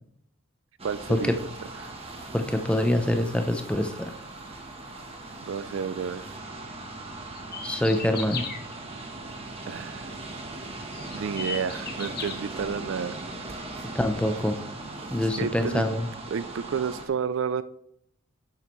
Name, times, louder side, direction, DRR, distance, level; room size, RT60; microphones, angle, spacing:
sound 1, 0.8-17.1, right 2 dB, 30° right, 1.1 m, -39 dB
voice 1, 0.8-1.5 1.8-1.9 5.5-6.3 9.7-10.1 11.1-13.2 15.4-15.8 16.3-17.6, right 6 dB, 60° right, 15 dB, 0.4 m, -30 dB
voice 2, 2.3-3.9 7.6-8.4 13.9-14.6 15.1-16.1, left 1 dB, 5° left, 6 dB, 0.6 m, -25 dB
sound 2, 7.3-8.6 10.3-10.4 10.9-12.3, left 6 dB, 45° left, 1.3 m, -35 dB
11.0 x 7.4 x 3.1 m, 0.72 s
head